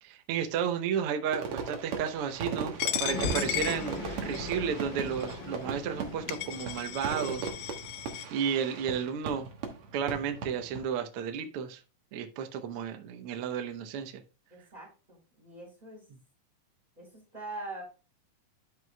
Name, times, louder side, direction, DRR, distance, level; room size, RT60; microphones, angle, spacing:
voice 1, 0.0-2.7 3.0-7.5 8.3-9.5 9.9-11.8 12.1-14.2, right 7 dB, 90° right, 1.2 m, -32 dB
Fireworks, 1.3-10.9, right 5 dB, 55° right, 1.8 m, -38 dB
Coin (dropping), 2.8-4.6 5.2-5.3 6.0-6.1 6.3-8.3, left 14 dB, 80° left, 1.8 m, -35 dB
sound 1, 3.1-7.8, left 2 dB, 40° left, 2.1 m, -39 dB
voice 2, 14.5-16.1 17.0-17.8, right 2 dB, 15° right, 3.3 m, -43 dB
12.0 x 5.5 x 2.2 m
omnidirectional pair, 3.7 m